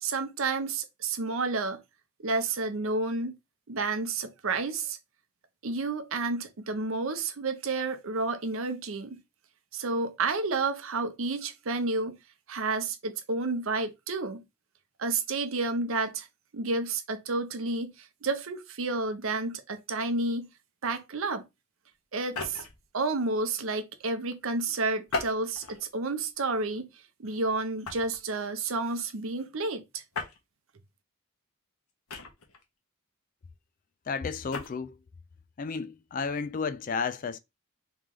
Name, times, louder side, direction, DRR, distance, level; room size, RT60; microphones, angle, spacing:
voice 1, 0.0-1.8 2.2-3.4 3.7-5.0 5.6-9.2 9.7-12.2 12.5-14.4 15.0-16.3 16.5-20.5 20.8-21.4 22.1-22.6 22.9-26.9 27.2-30.0, right 3 dB, 65° right, 0.7 m, -30 dB
sound 1, 22.2-22.8 25.1-25.8 26.5-26.7 27.8-28.2 30.1-30.4 32.1-32.6 34.3-34.7, left 3 dB, 85° left, 1.0 m, -36 dB
voice 2, 34.1-35.0 35.6-37.4, left 5 dB, 40° left, 0.3 m, -32 dB
3.1 x 3.1 x 3.7 m
head